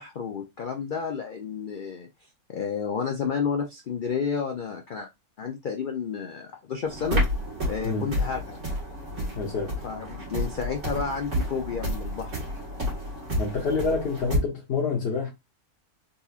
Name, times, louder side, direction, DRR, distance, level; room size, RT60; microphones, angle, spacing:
voice 1, 0.0-2.1 2.5-5.1 5.4-7.2 7.7-8.6 9.8-12.4, left 6 dB, 85° left, 0.4 m, -31 dB
sound 1, 6.9-14.4, equal, 55° right, 2.0 m, -30 dB
voice 2, 7.8-8.1 9.3-9.7 13.4-15.3, left 4 dB, 55° left, 1.1 m, -27 dB
4.0 x 2.7 x 2.4 m
omnidirectional pair, 1.5 m